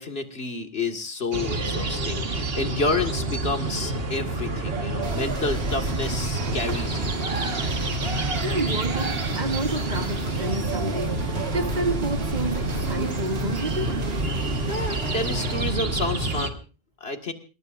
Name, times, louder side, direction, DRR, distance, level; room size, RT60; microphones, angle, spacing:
voice 1, 0.0-7.2 14.7-16.6 17.0-17.3, left 3 dB, 75° left, 2.3 m, -29 dB
sound 1, 1.3-16.5, right 2 dB, 70° right, 1.8 m, -28 dB
sound 2, 5.0-15.7, right 1 dB, 85° right, 2.5 m, -33 dB
voice 2, 8.4-14.0, right 2 dB, 45° right, 1.6 m, -30 dB
28.5 x 19.5 x 2.6 m
omnidirectional pair, 1.0 m